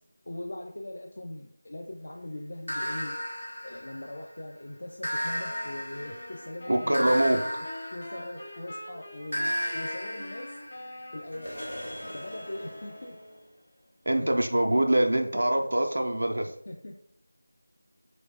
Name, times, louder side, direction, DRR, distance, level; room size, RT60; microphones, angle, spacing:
voice 1, 0.3-3.2 3.6-7.4 7.9-11.6 12.1-13.2 14.2-14.4 16.7-17.0, left 1 dB, 60° left, 1 dB, 0.4 m, -40 dB
sound 1, 2.7-4.4 5.0-8.7 9.3-13.0, equal, 75° left, 1.0 m, -35 dB
sound 2, 5.2-13.5, left 1 dB, 35° left, 0.9 m, -45 dB
voice 2, 6.7-7.4 14.1-16.5, right 1 dB, 75° right, 4 dB, 0.3 m, -24 dB
3.1 x 3.0 x 2.8 m, 0.69 s
figure-of-eight pair, 170°, 0 cm